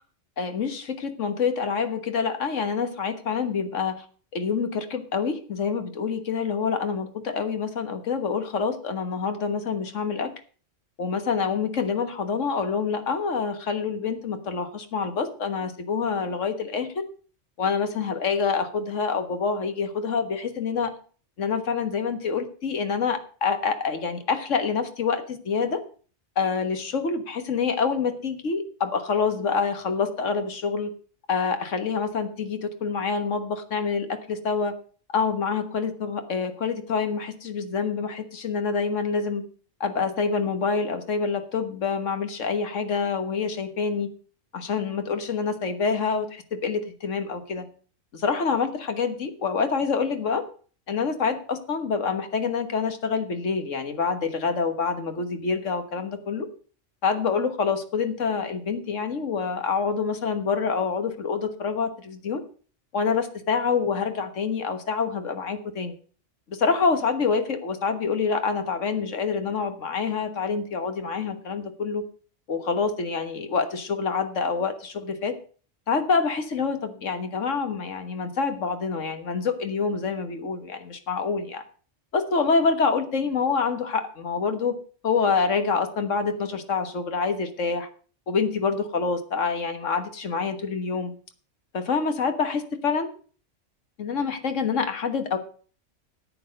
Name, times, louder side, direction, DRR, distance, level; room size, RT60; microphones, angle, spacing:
voice 1, 0.4-4.0 4.3-10.3 11.0-17.0 17.6-20.9 21.4-25.8 26.3-30.9 31.3-34.7 35.1-39.4 39.8-44.1 44.5-47.6 48.1-50.4 50.9-56.5 57.0-62.4 62.9-66.0 66.5-72.0 72.5-75.3 75.9-81.6 82.1-84.8 85.0-87.9 88.3-91.1 91.7-93.1 94.0-95.4, left 5 dB, 80° left, 8 dB, 1.7 m, -26 dB
9.8 x 8.7 x 6.4 m, 0.41 s
omnidirectional pair, 1.3 m